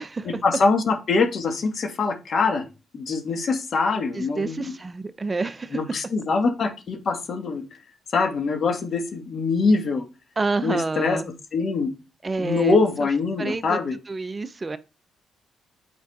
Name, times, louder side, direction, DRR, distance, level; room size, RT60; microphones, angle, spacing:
voice 1, 0.2-2.6 2.9-4.7 5.7-7.6 8.1-10.0 10.6-11.2 11.5-11.9 12.4-13.9, left 4 dB, 55° left, 1.4 m, -23 dB
voice 2, 4.2-5.8 10.4-11.2 12.2-12.8 13.4-13.8 14.1-14.8, right 3 dB, 25° right, 0.4 m, -28 dB
8.5 x 4.7 x 2.4 m
cardioid pair, 90°, 0 cm